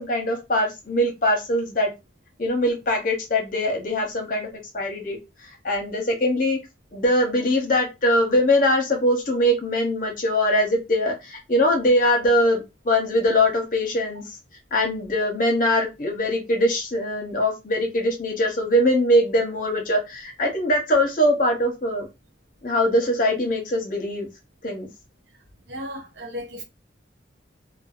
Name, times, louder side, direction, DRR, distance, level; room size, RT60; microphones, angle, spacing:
voice 1, 0.0-1.9 2.4-4.5 4.7-5.2 5.6-6.6 6.9-14.2 14.7-22.1 22.6-24.3 24.6-24.9, left 1 dB, 45° left, 0.8 m, -22 dB
voice 2, 25.7-26.6, equal, 70° right, 0.7 m, -35 dB
2.6 x 2.2 x 2.4 m
head